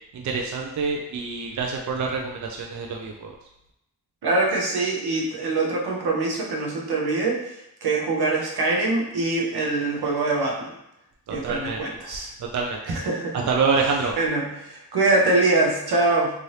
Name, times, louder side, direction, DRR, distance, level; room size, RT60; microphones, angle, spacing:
voice 1, 0.1-3.3 11.3-11.8 12.5-12.8 13.3-14.1, right 4 dB, 50° right, 1 dB, 0.4 m, -26 dB
voice 2, 4.2-7.6 7.8-10.7 11.3-12.3 12.9-13.5 14.2-16.3, right 2 dB, 70° right, -1 dB, 0.8 m, -23 dB
3.1 x 2.6 x 2.7 m, 0.84 s
cardioid pair, 70°, 40 cm